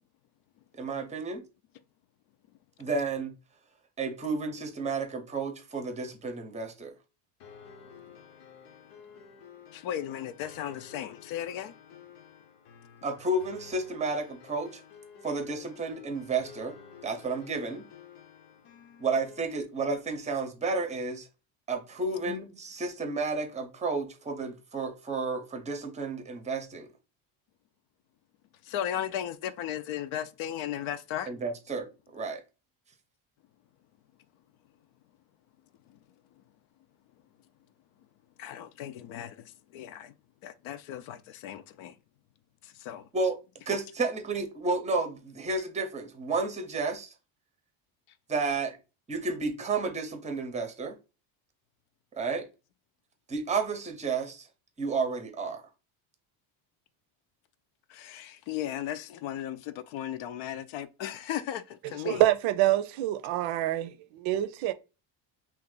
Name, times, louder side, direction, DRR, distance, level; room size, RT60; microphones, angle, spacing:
voice 1, 0.8-1.4 2.8-3.3 4.0-6.9 13.0-14.8 15.2-16.8 17.0-17.9 19.0-21.3 21.7-26.9 31.3-31.9 32.1-32.4 43.1-43.4 43.7-47.1 48.3-48.8 49.1-51.0 52.1-52.5 53.3-54.5 54.8-55.6, right 3 dB, 15° right, 0.6 m, -31 dB
sound 1, 7.4-19.4, left 7 dB, 90° left, 0.9 m, -52 dB
voice 2, 9.7-11.7 22.3-22.4 28.6-31.3 35.9-36.0 38.4-40.1 40.4-42.0 42.6-43.1 57.9-62.2, left 11 dB, 70° left, 0.6 m, -36 dB
voice 3, 62.0-64.7, right 14 dB, 70° right, 0.5 m, -26 dB
2.9 x 2.5 x 3.7 m
cardioid pair, 120°, 49 cm